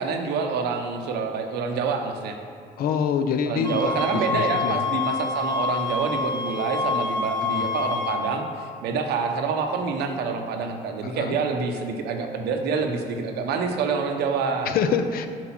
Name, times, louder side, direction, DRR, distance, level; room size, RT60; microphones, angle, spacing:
voice 1, 0.0-2.3 3.4-14.7, right 5 dB, 75° right, 4 dB, 0.7 m, -27 dB
voice 2, 2.8-4.8 7.4-7.7 11.0-11.4 14.6-15.3, left 6 dB, 60° left, 9 dB, 0.6 m, -26 dB
sound 1, 3.6-8.2, left 4 dB, 15° left, 1.5 m, -27 dB
6.0 x 4.8 x 5.8 m, 2.1 s
cardioid pair, 110°, 17 cm